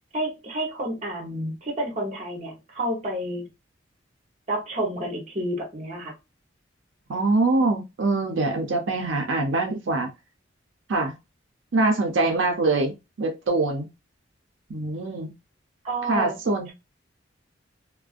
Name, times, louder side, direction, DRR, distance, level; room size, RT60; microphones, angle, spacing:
voice 1, 0.1-3.5 4.5-6.1 15.8-16.3, right 1 dB, 35° right, 0.9 m, -30 dB
voice 2, 7.1-10.1 10.9-11.1 11.7-13.9 14.7-15.3 16.1-16.7, right 3 dB, 80° right, 0.5 m, -24 dB
2.4 x 2.1 x 2.4 m
head